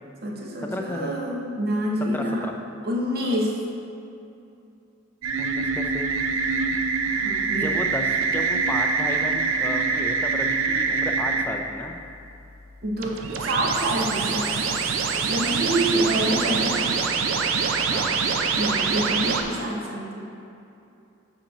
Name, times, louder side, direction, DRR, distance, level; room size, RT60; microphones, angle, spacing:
voice 1, 0.2-2.5 2.8-3.6 7.0-7.8 12.8-16.9 18.5-20.3, right 1 dB, 45° right, -2 dB, 0.9 m, -27 dB
voice 2, 0.7-1.2 2.1-2.5 5.4-6.1 7.6-8.1 8.3-11.9 17.8-18.3, left 1 dB, 10° left, 3 dB, 0.3 m, -33 dB
sound 1, 5.2-11.4 13.0-19.4, right 5 dB, 80° right, 0.5 m, -24 dB
8.0 x 2.9 x 5.8 m, 2.7 s
head